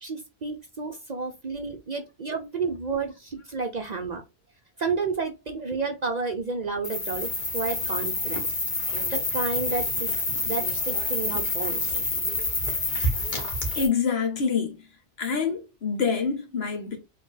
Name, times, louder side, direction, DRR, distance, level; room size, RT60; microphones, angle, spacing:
voice 1, 0.0-4.2 4.8-8.5 9.1-10.1 10.4-12.0, right 4 dB, 45° right, 0.6 m, -31 dB
sound 1, 6.8-13.9, left 2 dB, 45° left, 1.3 m, -28 dB
voice 2, 13.7-14.8 15.2-17.0, left 5 dB, 65° left, 1.3 m, -26 dB
4.3 x 3.0 x 3.2 m
omnidirectional pair, 1.2 m